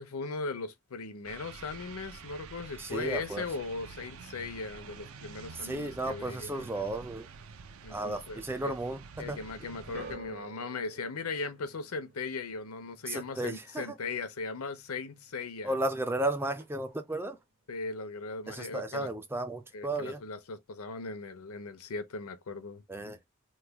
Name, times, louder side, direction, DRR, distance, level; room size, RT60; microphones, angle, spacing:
voice 1, 0.0-6.7 7.8-8.7 9.2-15.8 17.7-19.1 19.7-22.8, left 3 dB, 85° left, 0.7 m, -38 dB
sound 1, 1.2-10.2, right 5 dB, 75° right, 0.5 m, -48 dB
voice 2, 2.8-3.4 5.5-7.3 7.9-9.4 13.0-14.0 15.6-17.4 18.5-20.2 22.9-23.2, right 2 dB, 10° right, 0.3 m, -34 dB
sound 2, 9.9-16.2 16.5-17.1 17.9-18.0, right 3 dB, 45° right, 0.8 m, -52 dB
3.1 x 2.2 x 3.4 m
head